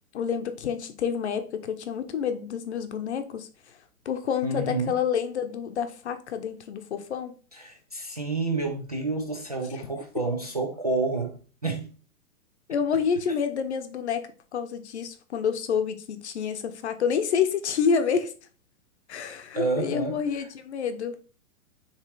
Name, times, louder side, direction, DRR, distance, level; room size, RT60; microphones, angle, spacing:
voice 1, 0.1-3.5 4.0-7.3 12.7-14.3 14.5-18.3 19.1-21.2, left 7 dB, 50° left, 0.9 m, -28 dB
voice 2, 4.4-4.9 7.5-11.9 19.5-20.5, right 3 dB, 30° right, 0.4 m, -29 dB
6.8 x 3.2 x 4.6 m
hypercardioid pair, 170°, 43 cm